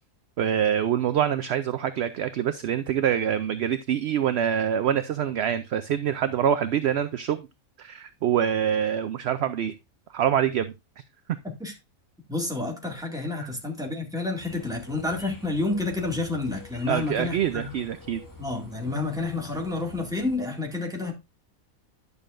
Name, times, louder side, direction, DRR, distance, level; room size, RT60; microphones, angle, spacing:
voice 1, 0.4-7.5 7.8-9.7 10.1-10.7 13.4-13.5 16.9-18.2, right 9 dB, 65° right, 0.7 m, -25 dB
voice 2, 12.3-17.7 18.4-21.1, left 3 dB, 5° right, 1.9 m, -29 dB
sound 1, 14.4-20.4, left 2 dB, 15° left, 1.2 m, -47 dB
11.0 x 6.8 x 2.5 m
omnidirectional pair, 1.5 m